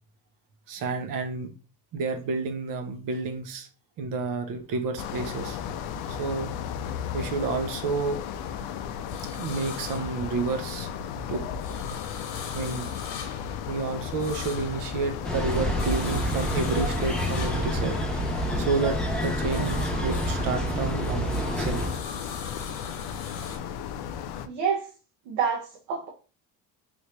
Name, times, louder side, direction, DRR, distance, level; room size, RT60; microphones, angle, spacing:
voice 1, 0.7-1.5 1.9-3.7 4.0-5.6 6.1-6.5 7.1-8.2 9.3-10.9 11.3-11.4 12.5-12.9 13.7-18.0 18.6-21.9, right 4 dB, 55° right, 7 dB, 0.8 m, -30 dB
sound 1, 4.5-6.9 7.2-10.9 11.3-18.7 19.0-23.6, left 5 dB, 90° left, 1.0 m, -43 dB
sound 2, 5.0-24.5, left 8 dB, 70° left, 0.5 m, -35 dB
sound 3, 15.2-22.0, equal, ahead, 0.5 m, -28 dB
voice 2, 24.4-24.9 25.3-26.1, right 7 dB, 85° right, -1 dB, 0.9 m, -28 dB
3.4 x 2.7 x 3.1 m, 0.36 s
cardioid pair, 135°, 40 cm